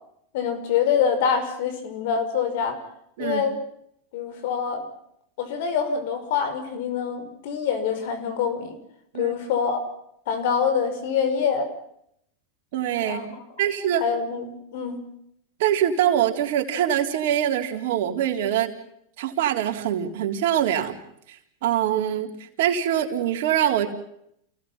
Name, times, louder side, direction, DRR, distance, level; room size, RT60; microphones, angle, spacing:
voice 1, 0.3-2.8 3.2-3.6 4.1-4.8 5.4-8.8 9.2-9.8 10.3-11.7 13.0-13.3 14.0-15.0, left 7 dB, 70° left, 9 dB, 5.8 m, -25 dB
voice 2, 12.7-13.2 13.6-14.0 15.6-18.7 19.2-21.0 21.3-22.3 22.6-23.9, right 10 dB, 70° right, 3 dB, 3.9 m, -24 dB
29.0 x 18.5 x 5.7 m, 0.73 s
hypercardioid pair, 115°, 0 cm